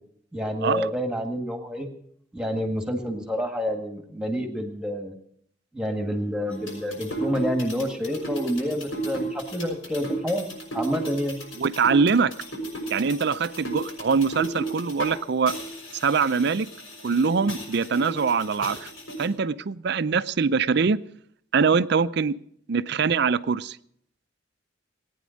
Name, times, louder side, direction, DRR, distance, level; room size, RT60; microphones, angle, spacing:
voice 1, 0.3-1.9 2.3-5.1 5.7-10.5 10.7-11.4, equal, 5° right, 1.7 m, -28 dB
sound 1, 6.5-15.2 15.5-19.3, right 2 dB, 85° left, 6.4 m, -34 dB
voice 2, 11.6-12.3 12.9-15.5 15.9-16.7 17.0-18.9 19.2-21.0 21.5-22.3 22.7-23.8, right 5 dB, 55° right, 0.5 m, -23 dB
18.5 x 9.6 x 6.4 m
head